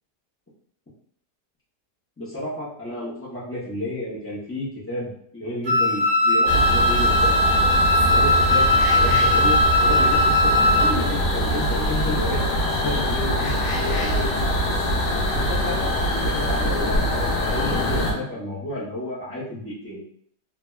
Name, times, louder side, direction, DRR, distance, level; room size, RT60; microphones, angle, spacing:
voice 1, 2.2-7.3 8.1-14.4 15.3-17.0 17.4-20.0, left 1 dB, 15° left, -8 dB, 0.4 m, -31 dB
Wind instrument woodwind instrument, 5.7-11.0, left 1 dB, 85° right, 1.3 m, -19 dB
sound 1, 6.5-18.1, equal, 90° left, 1.3 m, -23 dB
3.3 x 2.2 x 2.4 m, 0.64 s
omnidirectional pair, 1.7 m